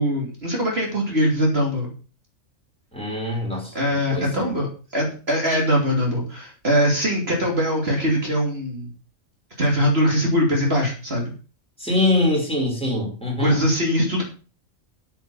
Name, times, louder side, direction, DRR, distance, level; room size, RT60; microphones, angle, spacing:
voice 1, 0.0-1.9 3.7-4.7 4.9-8.9 9.6-11.3 13.4-14.2, equal, 50° right, -1 dB, 3.2 m, -22 dB
voice 2, 2.9-3.7 4.1-4.5 11.8-13.6, left 2 dB, 5° left, -2 dB, 4.8 m, -23 dB
9.2 x 9.1 x 5.5 m, 0.36 s
omnidirectional pair, 1.3 m